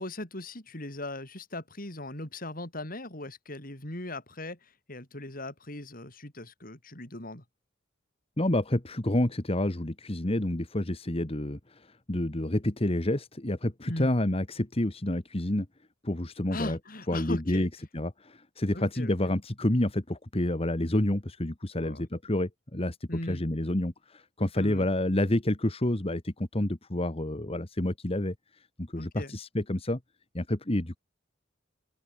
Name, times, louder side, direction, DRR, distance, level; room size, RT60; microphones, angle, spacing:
voice 1, 0.0-7.4 13.9-14.1 16.5-17.7 18.7-19.1 21.8-22.1 23.1-23.4 24.6-24.9 29.0-29.3, left 1 dB, 50° left, 5.3 m, -39 dB
voice 2, 8.4-15.7 16.0-16.8 17.1-23.0 23.2-30.0 30.3-31.0, left 1 dB, 30° left, 1.6 m, -29 dB
open air
head